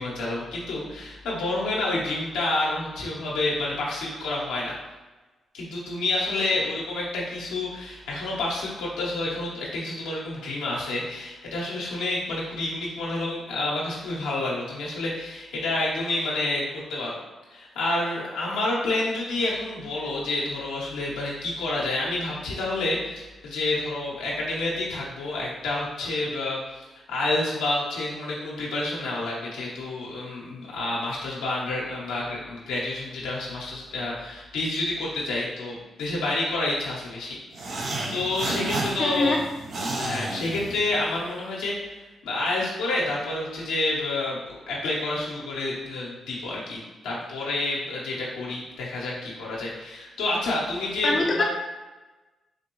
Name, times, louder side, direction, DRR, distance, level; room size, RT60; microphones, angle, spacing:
voice 1, 0.0-4.8 5.5-17.2 17.5-37.4 38.1-39.4 40.0-42.0 42.2-51.4, left 2 dB, 90° left, -5 dB, 0.9 m, -29 dB
sound 1, 37.5-41.2, right 2 dB, 70° right, 0.8 m, -31 dB
voice 2, 39.0-39.4 51.0-51.4, left 2 dB, 50° left, -1 dB, 0.6 m, -23 dB
4.4 x 2.6 x 3.0 m, 1.2 s
supercardioid pair, 50°, 0 cm